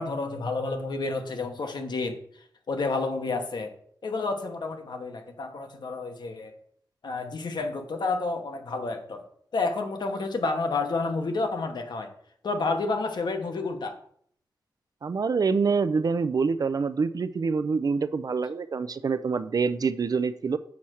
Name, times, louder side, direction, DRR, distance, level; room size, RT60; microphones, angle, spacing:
voice 1, 0.0-3.7 4.0-6.5 7.0-9.2 9.5-12.1 12.4-14.0, left 3 dB, 70° left, 5 dB, 1.1 m, -30 dB
voice 2, 15.0-20.6, right 5 dB, 55° right, 13 dB, 0.4 m, -26 dB
7.1 x 4.3 x 6.3 m, 0.65 s
wide cardioid pair, 85°, 8 cm